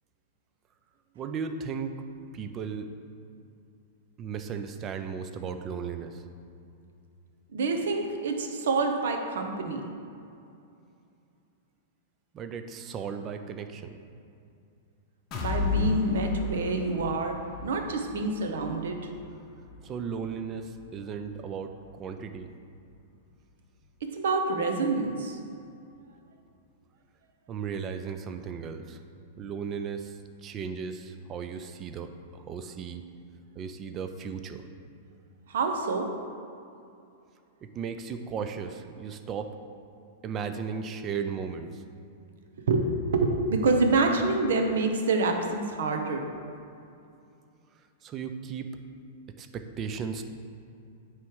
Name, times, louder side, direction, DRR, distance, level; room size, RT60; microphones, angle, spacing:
voice 1, 1.1-2.0 2.3-2.9 4.2-6.2 12.3-14.0 19.8-22.5 27.5-29.0 29.4-33.0 33.6-34.7 37.6-39.5 40.2-41.8 48.0-48.7 49.4-50.2, right 6 dB, 25° right, 8 dB, 0.4 m, -36 dB
voice 2, 7.5-9.9 15.3-19.1 24.0-25.4 35.5-36.1 42.7-46.2, right 3 dB, 80° right, 4 dB, 0.8 m, -27 dB
sound 1, 15.3-23.1 23.5-23.6 24.0-24.1, left 4 dB, 30° left, 0.8 m, -35 dB
9.2 x 3.1 x 4.7 m, 2.6 s
supercardioid pair, 150°, 0 cm